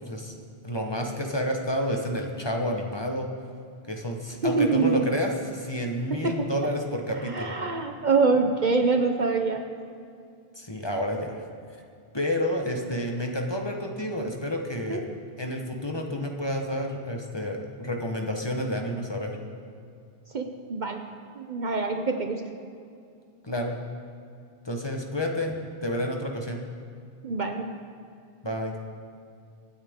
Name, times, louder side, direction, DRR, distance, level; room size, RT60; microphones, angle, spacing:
voice 1, 0.0-3.3 3.9-7.5 10.6-11.4 12.1-15.0 15.4-19.4 23.4-23.8 24.6-26.6 28.4-28.8, equal, 25° left, 2 dB, 1.1 m, -30 dB
voice 2, 4.4-5.1 6.1-6.7 7.3-9.6 14.9-15.0 20.3-21.0 21.3-22.4 27.2-27.7, right 4 dB, 50° right, 5 dB, 0.8 m, -25 dB
25.0 x 9.0 x 3.6 m, 2.4 s
omnidirectional pair, 1.1 m